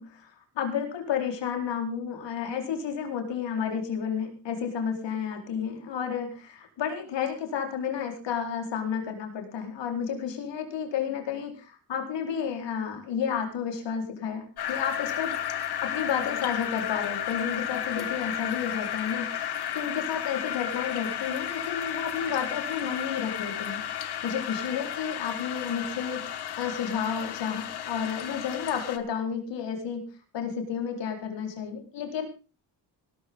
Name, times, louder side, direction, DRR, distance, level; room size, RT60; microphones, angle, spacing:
voice 1, 0.0-23.8 24.2-30.1 30.3-32.3, left 7 dB, 80° left, 4 dB, 4.4 m, -31 dB
sound 1, 14.6-29.0, left 10 dB, 65° left, 1.7 m, -33 dB
18.0 x 13.0 x 3.8 m, 0.33 s
cardioid pair, 140°, 43 cm